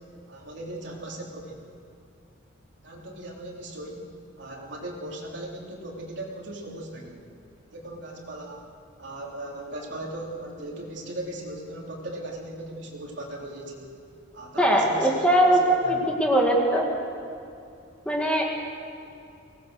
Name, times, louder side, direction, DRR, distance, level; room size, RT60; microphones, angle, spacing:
voice 1, 0.3-1.7 2.8-4.1 4.4-7.2 7.7-8.7 9.0-13.9 14.3-15.3 15.6-16.1, right 1 dB, 65° right, -2 dB, 3.6 m, -38 dB
voice 2, 14.6-15.6 16.2-16.8 18.1-18.4, right 1 dB, 5° left, -1 dB, 2.2 m, -20 dB
24.0 x 18.5 x 6.6 m, 2.6 s
head